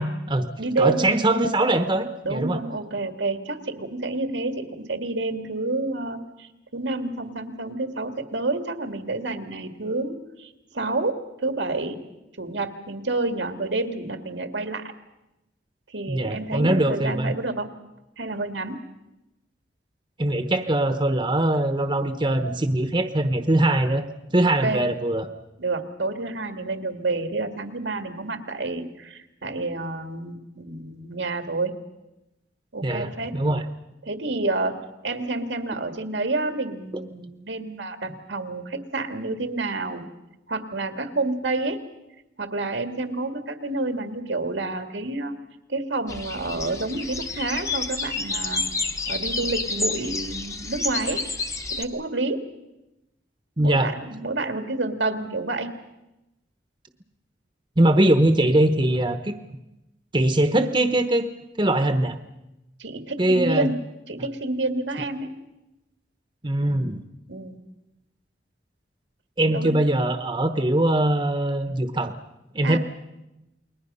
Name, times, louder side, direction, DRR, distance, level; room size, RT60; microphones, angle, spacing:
voice 1, 0.0-0.5 0.8-2.6 16.1-17.3 20.2-24.0 24.3-25.3 32.8-33.7 53.6-53.9 57.8-59.3 60.1-61.3 61.6-62.2 63.2-63.7 66.4-67.0 69.4-72.1 72.5-72.8, right 1 dB, 25° right, 8 dB, 1.0 m, -22 dB
voice 2, 0.6-1.1 2.2-11.1 11.4-12.0 12.4-14.9 15.9-17.7 18.2-18.8 24.6-24.8 25.6-31.8 32.7-33.3 34.0-34.8 35.0-40.0 40.5-41.8 42.4-45.4 45.7-48.6 49.1-51.2 51.7-52.4 53.6-55.7 62.8-63.8 64.1-65.3 67.3-67.6 69.5-69.8 72.6-72.8, right 2 dB, 80° right, 7 dB, 2.1 m, -29 dB
sound 1, 46.1-51.8, left 3 dB, 15° left, 1.0 m, -29 dB
29.0 x 21.5 x 5.5 m, 0.94 s
head